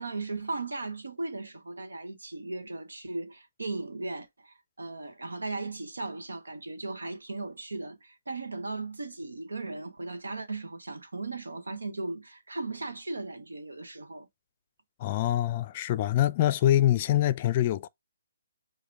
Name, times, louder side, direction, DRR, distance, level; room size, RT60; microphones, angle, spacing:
voice 1, 0.0-14.3, right 3 dB, 85° right, 1.1 m, -37 dB
voice 2, 15.0-17.9, left 13 dB, 35° left, 0.4 m, -24 dB
5.0 x 2.1 x 4.6 m
figure-of-eight pair, 145°, 0 cm